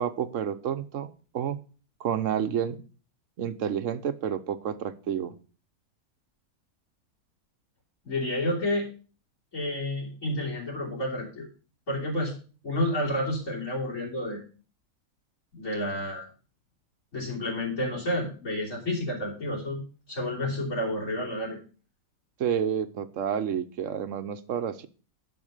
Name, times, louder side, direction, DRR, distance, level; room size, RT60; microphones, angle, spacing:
voice 1, 0.0-1.6 2.0-2.8 3.4-5.4 22.4-24.9, right 8 dB, 65° right, 12 dB, 1.1 m, -30 dB
voice 2, 8.0-8.9 9.5-11.5 11.9-12.3 12.6-14.4 15.5-16.2 17.1-19.8 20.1-21.6, left 1 dB, 60° left, -3 dB, 3.6 m, -30 dB
11.0 x 5.6 x 6.5 m, 0.37 s
omnidirectional pair, 1.5 m